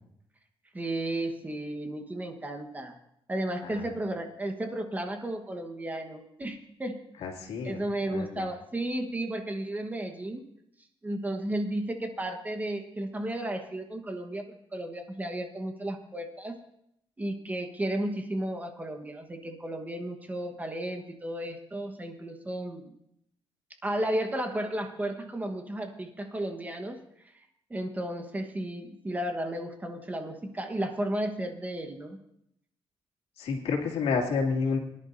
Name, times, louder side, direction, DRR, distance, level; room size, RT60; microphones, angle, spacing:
voice 1, 0.7-2.9 3.3-7.0 7.6-10.5 11.0-16.6 17.2-22.9 23.8-27.0 27.7-32.2, right 1 dB, 15° right, 5 dB, 1.2 m, -33 dB
voice 2, 7.2-8.5 33.4-34.8, left 5 dB, 85° left, 1 dB, 2.4 m, -30 dB
23.0 x 11.0 x 2.7 m, 0.75 s
cardioid pair, 130°, 10 cm